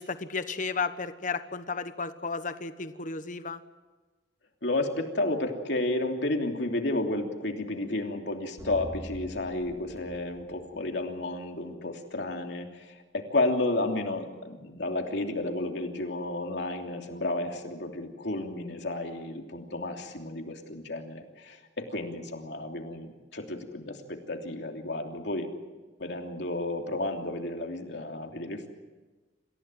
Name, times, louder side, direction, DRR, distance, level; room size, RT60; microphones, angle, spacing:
voice 1, 0.0-3.6, left 4 dB, 45° left, 11 dB, 1.2 m, -33 dB
voice 2, 4.6-25.5 26.0-28.7, left 2 dB, 70° left, 3 dB, 3.1 m, -32 dB
sound 1, 8.6-11.3, equal, 20° right, 4.0 m, -44 dB
27.0 x 15.5 x 9.1 m, 1.2 s
head